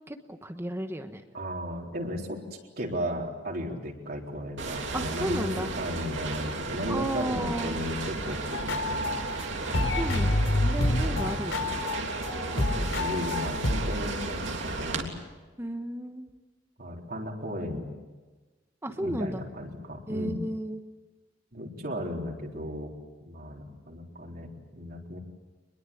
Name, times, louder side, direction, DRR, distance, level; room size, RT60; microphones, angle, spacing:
voice 1, 0.1-1.2 4.9-5.7 6.9-7.8 10.0-11.8 15.6-16.2 18.8-19.4 20.1-20.8, right 1 dB, 15° right, 6 dB, 1.2 m, -33 dB
voice 2, 1.3-9.2 9.6-10.7 11.0-11.4 12.5-15.1 16.8-17.9 19.0-20.4 21.5-22.9 23.2-25.2, equal, 50° right, -1 dB, 4.0 m, -35 dB
sound 1, 4.6-15.0, right 3 dB, 70° right, 3.2 m, -34 dB
sound 2, 8.5-9.4 9.7-14.1, left 1 dB, 85° left, 4.3 m, -28 dB
25.0 x 22.0 x 8.6 m, 1.3 s
head